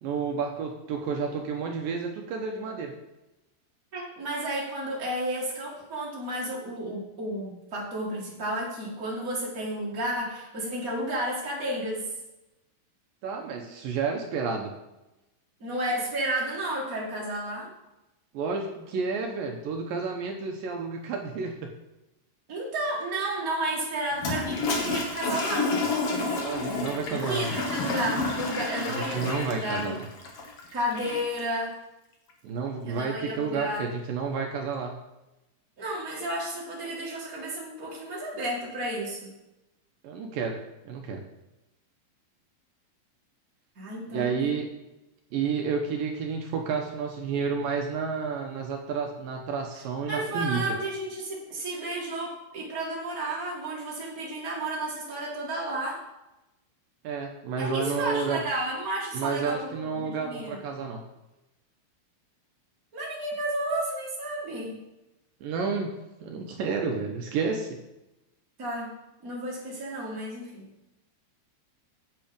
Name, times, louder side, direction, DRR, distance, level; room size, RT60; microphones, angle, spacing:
voice 1, 0.0-2.9 13.2-14.7 18.3-21.7 26.3-27.6 28.9-30.1 32.4-34.9 40.0-40.6 40.8-41.2 44.1-44.7 45.3-50.7 57.0-58.4 59.1-61.0 65.4-65.9 66.2-67.8, right 5 dB, 75° right, 2 dB, 2.1 m, -30 dB
voice 2, 3.9-12.1 15.6-17.7 22.5-25.7 27.1-29.9 30.7-31.8 32.8-33.9 35.8-39.3 43.7-44.5 50.1-56.0 57.6-60.5 62.9-64.8 68.6-68.9 69.2-70.7, right 1 dB, 50° right, -5 dB, 1.0 m, -32 dB
Toilet flush, 24.1-31.4, left 3 dB, 85° left, 1.3 m, -30 dB
10.5 x 8.3 x 5.2 m, 0.98 s
omnidirectional pair, 5.2 m